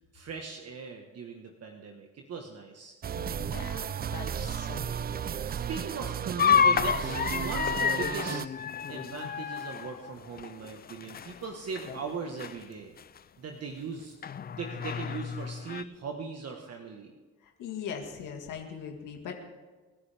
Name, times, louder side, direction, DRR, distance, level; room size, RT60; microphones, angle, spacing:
voice 1, 0.1-2.9 4.3-4.5 5.5-8.4 8.9-12.9 13.4-14.2 14.5-17.1, right 5 dB, 55° right, 2 dB, 1.5 m, -39 dB
sound 1, 3.0-8.5, right 8 dB, 30° right, 0.4 m, -34 dB
voice 2, 3.2-5.2 17.4-19.4, left 7 dB, 85° left, 2 dB, 1.9 m, -41 dB
sound 2, 6.4-11.5 11.8-12.1 12.4-12.5 13.2-13.3 14.2-15.8, left 7 dB, 30° left, 0.4 m, -29 dB
27.0 x 10.0 x 3.5 m, 1.3 s
cardioid pair, 90°, 30 cm